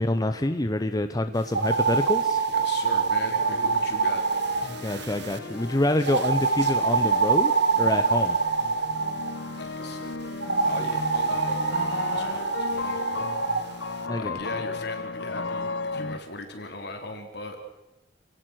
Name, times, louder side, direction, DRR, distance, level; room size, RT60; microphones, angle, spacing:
voice 1, 0.0-2.4 4.7-8.4 14.1-14.4, left 1 dB, 20° left, 8 dB, 0.8 m, -26 dB
screech owl, 1.5-5.4 6.0-9.3 10.4-13.6, right 4 dB, 65° right, 1.5 m, -25 dB
voice 2, 2.5-4.2 9.8-10.1 10.7-13.3 14.1-17.6, left 2 dB, 65° left, 4 dB, 3.8 m, -39 dB
sound 1, 3.4-16.2, left 3 dB, 85° left, 1.2 m, -35 dB
30.0 x 18.0 x 6.5 m, 0.97 s
head